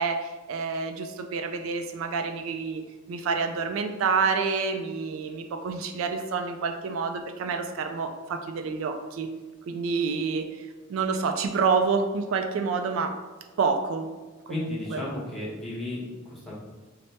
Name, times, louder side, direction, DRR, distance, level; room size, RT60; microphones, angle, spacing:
voice 1, 0.0-2.8 3.1-9.3 9.7-13.2 13.6-14.1 14.5-15.0, right 5 dB, 75° right, 7 dB, 0.3 m, -28 dB
voice 2, 14.4-16.5, left 1 dB, ahead, -6 dB, 0.9 m, -34 dB
4.0 x 2.0 x 3.3 m, 1.3 s
head